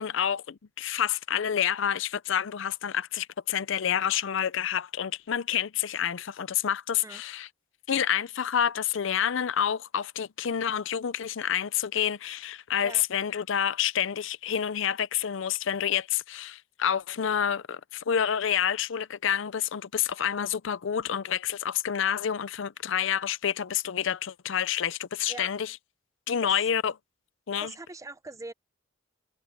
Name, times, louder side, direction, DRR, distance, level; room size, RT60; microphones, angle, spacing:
voice 1, 0.0-7.5 7.9-25.7 26.3-26.9 27.5-27.7, left 9 dB, 65° left, 0.5 m, -28 dB
voice 2, 27.6-28.5, right 3 dB, 15° right, 0.6 m, -42 dB
head